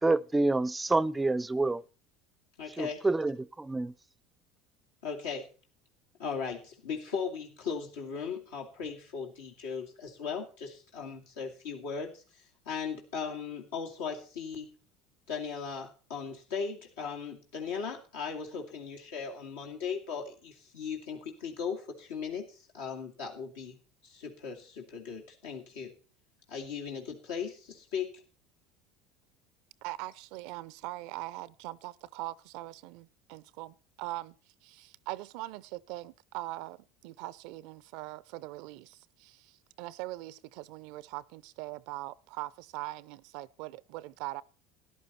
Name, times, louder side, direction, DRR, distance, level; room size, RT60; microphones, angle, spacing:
voice 1, 0.0-1.8 2.8-3.9, right 2 dB, 15° right, 0.5 m, -28 dB
voice 2, 2.6-3.1 5.0-5.5 6.2-14.7 15.3-23.8 24.0-25.9 26.5-28.2, left 6 dB, 90° left, 2.4 m, -38 dB
voice 3, 29.8-34.3 34.6-44.4, right 17 dB, 70° right, 0.5 m, -41 dB
13.5 x 11.0 x 4.2 m
supercardioid pair, 100°, 0 cm